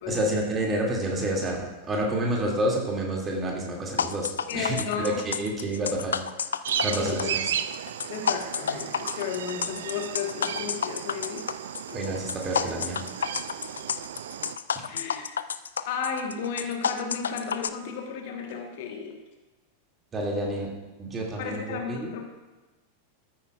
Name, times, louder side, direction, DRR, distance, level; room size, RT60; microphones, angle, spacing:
voice 1, 0.1-6.2 6.8-7.4 11.9-13.0 20.1-20.7 21.0-22.1, right 1 dB, 20° right, -1 dB, 2.3 m, -29 dB
sound 1, 4.0-17.7, left 7 dB, 70° left, 0.3 m, -30 dB
voice 2, 4.5-5.2 6.9-7.3 8.1-11.4 14.9-15.2 15.8-19.2 21.4-22.3, left 6 dB, 50° left, 3 dB, 1.2 m, -33 dB
sound 2, 6.6-14.6, right 9 dB, 60° right, 0.4 m, -34 dB
14.0 x 8.8 x 2.4 m, 1.1 s
figure-of-eight pair, 90°, 0 cm